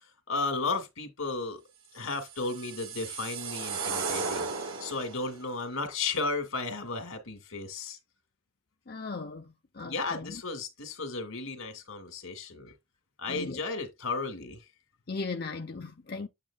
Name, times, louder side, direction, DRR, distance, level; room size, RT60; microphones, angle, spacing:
voice 1, 0.3-1.6 1.9-8.0 9.8-12.7 13.2-14.6, left 3 dB, 85° left, 2.2 m, -34 dB
sound 1, 2.1-5.3, right 4 dB, 80° right, 1.7 m, -35 dB
voice 2, 8.9-10.4 13.3-13.6 15.1-16.3, left 4 dB, 45° left, 0.6 m, -38 dB
8.7 x 6.6 x 2.3 m
head